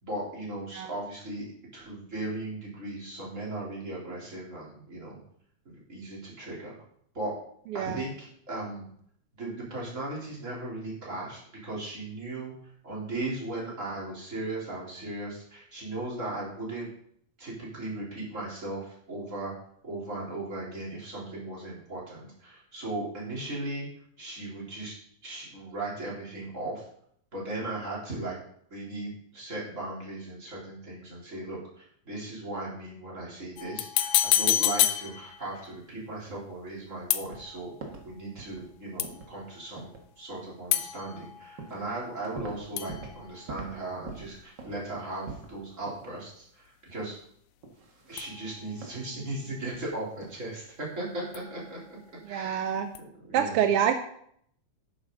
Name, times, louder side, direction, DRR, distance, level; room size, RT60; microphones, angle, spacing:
voice 1, 0.0-5.2 5.7-6.7 7.1-7.3 7.7-8.9 9.4-12.5 12.8-16.9 17.4-19.5 19.8-23.9 24.2-24.9 25.2-26.8 27.3-28.4 28.7-37.7 38.0-47.2 48.1-51.8 52.3-52.8 53.2-53.6, right 2 dB, 25° right, -5 dB, 4.1 m, -37 dB
sound 1, 33.6-35.7 37.1-37.8 39.0-39.5 40.7-42.5 42.8-43.9 48.2-48.9 51.3-52.0 52.9-53.0, left 12 dB, 90° left, 2.1 m, -30 dB
sound 2, 37.2-37.5 37.8-38.1 38.4-38.7 39.0-39.3 39.8-40.1 41.1-41.2 41.6-41.9 42.1-43.2 43.5-43.8 44.1-45.6 45.9-46.1 46.4-46.5 47.6-48.3 48.8-49.0 49.5-49.9 50.1-50.3, right 4 dB, 45° right, 1.9 m, -43 dB
voice 2, 52.3-52.9 53.3-53.9, right 9 dB, 75° right, 7 dB, 1.3 m, -26 dB
11.5 x 9.7 x 4.0 m, 0.67 s
omnidirectional pair, 3.3 m